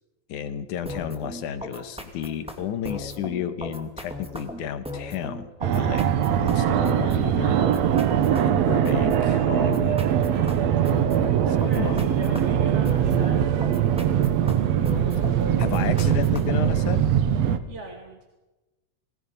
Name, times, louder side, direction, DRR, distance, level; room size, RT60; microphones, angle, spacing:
voice 1, 0.3-5.5 5.7-7.6 8.2-10.9 11.6-12.1 15.6-17.0, left 8 dB, 80° left, 11 dB, 2.7 m, -32 dB
sound 1, 0.9-16.7, left 1 dB, ahead, 1.9 m, -37 dB
Fixed-wing aircraft airplane, 5.6-17.6, right 9 dB, 65° right, 2.1 m, -22 dB
voice 2, 11.4-13.4 17.7-18.3, right 2 dB, 25° right, 1 dB, 2.3 m, -38 dB
27.5 x 20.5 x 5.4 m, 1.1 s
omnidirectional pair, 3.5 m